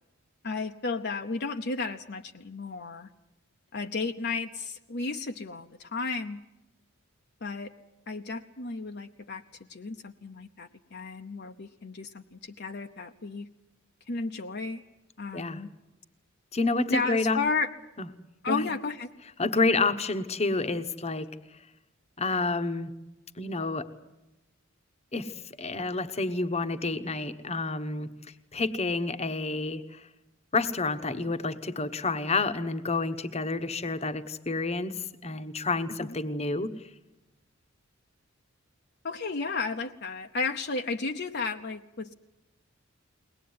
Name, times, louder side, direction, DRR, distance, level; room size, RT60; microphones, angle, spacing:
voice 1, 0.4-3.1 3.7-6.4 7.4-7.7 8.1-9.4 9.7-13.5 14.1-14.8 15.2-15.7 16.9-17.7 18.4-19.1 36.0-36.2 39.0-42.1, left 4 dB, 55° left, 4 dB, 0.8 m, -33 dB
voice 2, 16.5-17.4 18.0-18.1 18.5-18.7 19.4-21.3 22.2-22.9 23.4-23.9 25.1-28.1 28.5-30.1 30.5-36.7, left 3 dB, 30° left, 10 dB, 1.0 m, -29 dB
22.5 x 19.0 x 9.5 m, 1.0 s
head